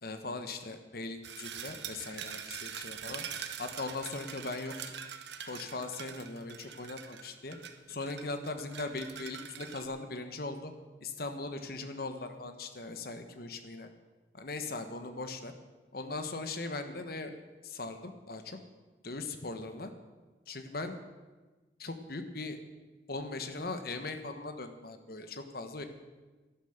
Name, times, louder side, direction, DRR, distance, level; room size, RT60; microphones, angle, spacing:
voice 1, 0.0-3.3 3.6-5.0 5.4-7.6 7.9-10.7 11.0-13.9 14.3-15.5 15.9-17.3 17.6-18.6 19.0-19.9 20.5-21.0 21.8-22.6 23.1-25.8, left 3 dB, 55° left, 7 dB, 1.2 m, -39 dB
sound 1, 1.2-9.9, right 8 dB, 70° right, 1.0 m, -44 dB
11.5 x 11.5 x 6.6 m, 1.3 s
head